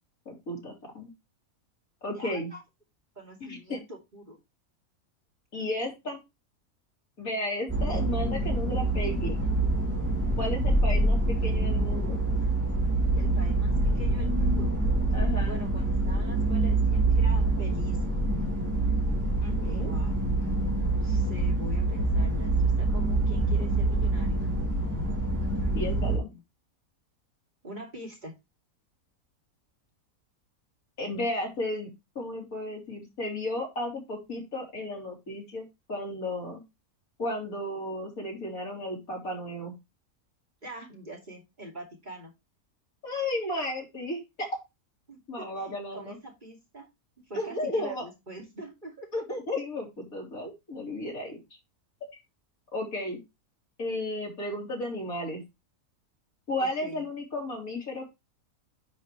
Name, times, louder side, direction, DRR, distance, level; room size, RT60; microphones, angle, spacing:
voice 1, 0.3-1.1 2.0-2.5 3.4-3.8 5.5-6.2 7.2-9.4 10.4-12.2 15.1-15.6 19.4-19.9 25.8-26.3 31.0-31.9 32.2-35.6 35.9-36.6 37.2-39.8 43.0-44.5 45.3-46.2 47.3-48.0 49.1-51.4 52.0-52.1 52.7-53.2 53.8-55.4 56.5-58.0, left 1 dB, 70° left, -1 dB, 4.0 m, -33 dB
voice 2, 2.0-2.6 3.2-4.4 13.2-14.7 15.4-18.0 19.6-24.5 25.5-26.4 27.6-28.3 40.6-42.3 45.1-46.9 47.3-49.1 56.6-57.0, right 1 dB, 30° right, 0 dB, 2.7 m, -44 dB
sound 1, 7.7-26.2, right 2 dB, 10° right, 2.6 m, -26 dB
10.0 x 5.4 x 3.2 m, 0.22 s
omnidirectional pair, 1.5 m